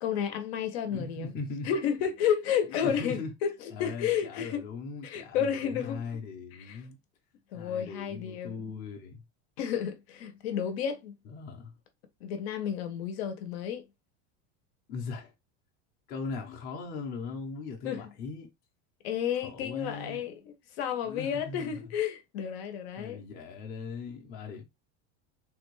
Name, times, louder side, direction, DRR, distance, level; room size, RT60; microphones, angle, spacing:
voice 1, 0.0-1.3 1.7-3.5 3.8-4.6 5.0-6.0 6.5-6.8 7.5-8.6 9.6-11.1 12.2-13.8 17.8-18.0 19.0-23.2, left 8 dB, 65° left, 0.8 m, -31 dB
voice 2, 0.9-1.7 2.8-3.3 3.7-7.0 7.5-9.2 11.2-11.7 14.9-15.3 16.1-18.5 19.4-20.2 21.0-21.7 23.0-24.6, left 4 dB, 30° left, 0.6 m, -39 dB
3.5 x 2.2 x 3.1 m
supercardioid pair, 170°, 34 cm